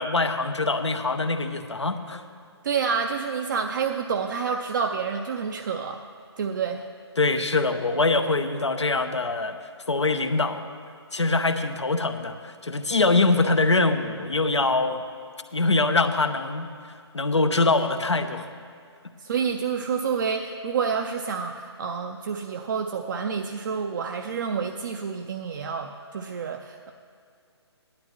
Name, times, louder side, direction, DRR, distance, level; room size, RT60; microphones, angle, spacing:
voice 1, 0.0-2.2 7.2-9.6 9.9-10.6 11.1-15.0 15.5-16.7 17.1-18.5, left 3 dB, 85° left, 8 dB, 0.8 m, -23 dB
voice 2, 2.6-6.0 6.4-6.9 19.2-26.9, right 6 dB, 45° right, 4 dB, 0.5 m, -28 dB
16.0 x 11.5 x 3.1 m, 2.3 s
figure-of-eight pair, 140°, 14 cm